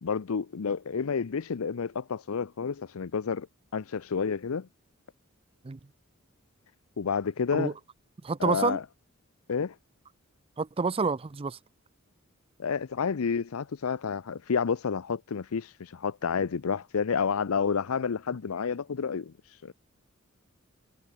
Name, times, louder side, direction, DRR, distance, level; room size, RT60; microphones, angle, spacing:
voice 1, 0.0-3.5 3.7-4.7 7.0-7.7 8.4-8.8 9.5-9.7 12.6-19.3 19.6-19.7, left 6 dB, 75° left, 0.6 m, -30 dB
voice 2, 8.2-8.8 10.6-11.6, right 4 dB, 25° right, 0.5 m, -28 dB
head